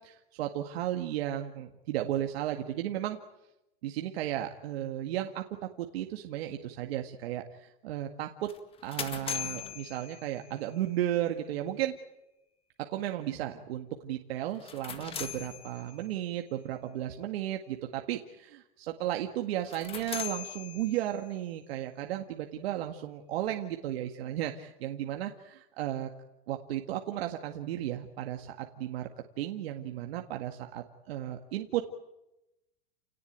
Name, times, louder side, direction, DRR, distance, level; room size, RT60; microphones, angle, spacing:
voice 1, 0.0-3.2 3.8-5.4 5.8-8.5 8.8-12.0 12.8-26.1 26.5-29.1 29.4-31.8, right 12 dB, 65° right, 4 dB, 2.0 m, -34 dB
sound 1, 8.5-10.7 14.5-16.2 19.5-21.3, left 8 dB, 15° left, 1.8 m, -40 dB
29.5 x 18.5 x 9.0 m, 0.92 s
supercardioid pair, 165°, 33 cm